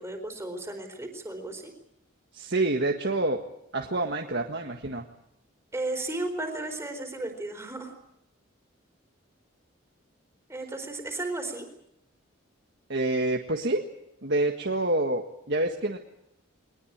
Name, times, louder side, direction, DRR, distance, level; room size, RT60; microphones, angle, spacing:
voice 1, 0.0-1.7 5.7-7.9 10.5-11.7, right 2 dB, 15° right, 4 dB, 4.4 m, -34 dB
voice 2, 2.3-3.4 3.7-5.0 12.9-13.8 14.2-16.0, right 2 dB, 55° right, 2 dB, 1.7 m, -27 dB
23.0 x 19.5 x 8.8 m, 0.80 s
head